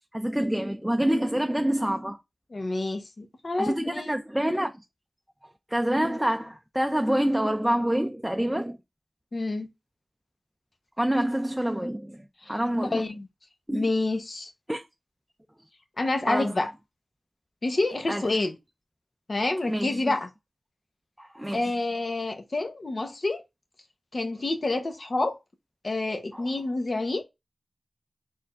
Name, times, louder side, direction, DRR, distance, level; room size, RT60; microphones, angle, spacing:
voice 1, 0.1-2.2 3.6-4.7 5.7-8.8 11.0-12.2 12.5-13.0 13.7-13.9 14.7-14.8 16.3-16.5 18.1-18.2 19.7-20.0 21.2-21.6 26.3-26.4, right 1 dB, 5° right, 0.5 m, -26 dB
voice 2, 2.5-4.2 9.3-9.7 12.5-12.6 12.9-13.3 13.7-14.5 16.0-16.7 17.6-18.6 19.3-20.3 21.5-23.4 24.1-25.4 25.8-27.2, left 2 dB, 55° left, 0.9 m, -28 dB
4.2 x 3.2 x 2.4 m
cardioid pair, 50°, 0 cm